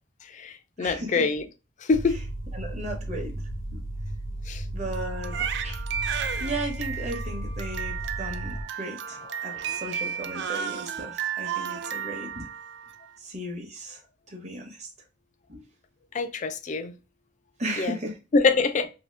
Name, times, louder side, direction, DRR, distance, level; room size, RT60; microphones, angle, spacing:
voice 1, 0.2-1.5 1.8-2.2 4.5-4.6 9.4-9.8 16.1-17.0 17.8-18.0 18.3-18.9, left 4 dB, 40° left, 0.4 m, -25 dB
voice 2, 0.8-1.2 2.5-3.3 3.7-3.8 4.7-5.4 5.6-5.8 6.4-12.5 13.2-14.0 14.3-14.9 15.5-15.6 17.6-18.1, right 1 dB, 35° right, 0.8 m, -36 dB
sound 1, 1.9-8.6, right 1 dB, 85° left, 0.7 m, -34 dB
Crying sobbing, 4.9-13.1, right 8 dB, 60° right, 0.3 m, -33 dB
2.8 x 2.7 x 3.3 m
head